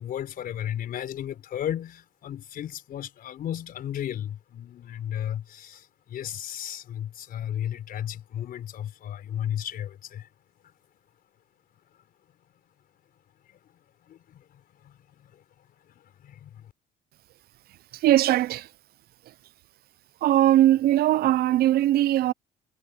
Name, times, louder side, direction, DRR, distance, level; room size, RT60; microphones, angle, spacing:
voice 1, 0.0-10.3 10.6-10.7 13.5-13.6 14.0-15.4 15.8-16.7, left 10 dB, 60° left, 4.9 m, -35 dB
voice 2, 17.9-18.7 20.2-22.3, right 13 dB, 65° right, 0.6 m, -20 dB
cardioid pair, 110°, 17 cm